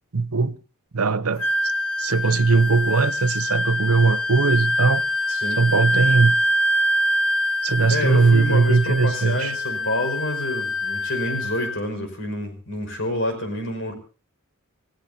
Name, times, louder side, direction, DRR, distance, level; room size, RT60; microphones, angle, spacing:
voice 1, 0.1-0.5 0.9-1.5 2.0-5.0 5.6-6.3 7.6-9.5, right 4 dB, 80° right, 0.8 m, -19 dB
Wind instrument woodwind instrument, 1.4-11.8, equal, 80° left, 1.5 m, -24 dB
voice 2, 5.3-5.7 7.9-13.9, left 1 dB, 60° left, 5.5 m, -28 dB
28.5 x 17.5 x 2.8 m
head